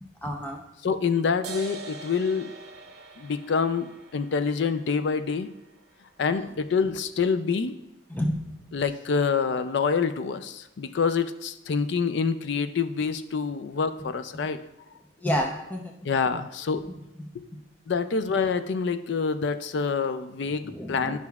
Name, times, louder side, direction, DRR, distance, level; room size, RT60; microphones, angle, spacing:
voice 1, 0.2-0.6 6.3-6.5 8.1-8.4 15.2-15.9 20.7-21.2, equal, 10° left, 1 dB, 0.6 m, -29 dB
voice 2, 0.8-2.5 3.2-5.5 6.2-7.8 8.7-14.6 16.0-16.8 17.3-17.5 17.9-21.2, left 5 dB, 65° left, 11 dB, 0.4 m, -26 dB
sound 1, 1.4-8.4, right 3 dB, 60° right, 0.9 m, -46 dB
11.5 x 5.8 x 2.4 m, 0.89 s
head